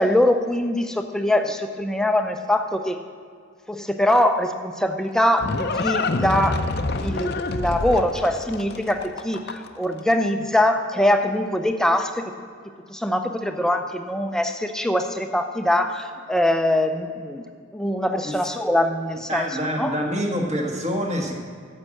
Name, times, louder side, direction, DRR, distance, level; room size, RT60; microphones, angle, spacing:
voice 1, 0.0-3.0 3.7-6.7 6.9-12.3 12.9-17.5 17.7-19.5 19.8-19.9, left 1 dB, 5° left, 6 dB, 0.5 m, -23 dB
Livestock farm animals working animals, 4.8-9.9, left 3 dB, 50° left, 0.5 m, -27 dB
voice 2, 19.3-21.5, equal, 35° right, 0 dB, 1.5 m, -26 dB
9.8 x 7.6 x 6.4 m, 2.2 s
head